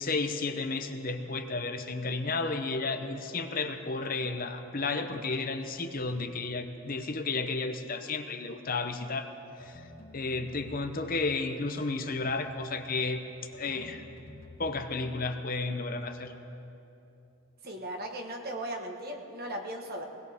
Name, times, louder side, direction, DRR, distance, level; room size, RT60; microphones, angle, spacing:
voice 1, 0.0-9.3 9.6-9.8 10.1-13.2 13.6-14.0 14.6-16.3, left 3 dB, 40° left, 7 dB, 0.7 m, -32 dB
sound 1, 9.6-11.4 12.4-12.9 13.5-15.3, left 1 dB, 75° left, 2.7 m, -50 dB
voice 2, 17.6-20.1, right 1 dB, 45° right, 3 dB, 1.4 m, -37 dB
20.0 x 19.0 x 3.5 m, 2.9 s
head